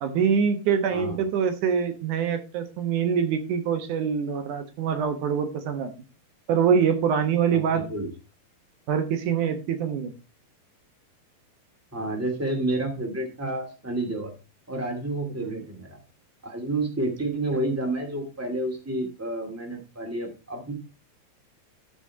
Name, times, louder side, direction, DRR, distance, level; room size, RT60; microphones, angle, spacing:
voice 1, 0.0-5.9 6.5-7.8 8.9-10.1 15.4-15.6, right 7 dB, 65° right, 8 dB, 2.3 m, -24 dB
voice 2, 7.5-8.1 11.9-14.3 14.7-16.0 16.4-20.7, right 2 dB, 5° right, 2 dB, 1.4 m, -30 dB
13.0 x 5.0 x 4.8 m, 0.31 s
omnidirectional pair, 4.4 m